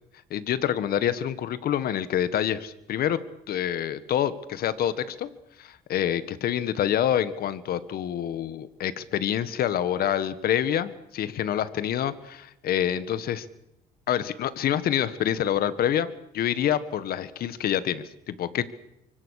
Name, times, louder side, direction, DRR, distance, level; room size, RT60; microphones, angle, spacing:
voice 1, 0.3-3.2 3.5-5.3 5.6-13.5 14.1-16.1 16.3-18.7, left 10 dB, 65° left, 14 dB, 1.7 m, -27 dB
25.0 x 24.0 x 6.7 m, 0.82 s
cardioid pair, 110°, 17 cm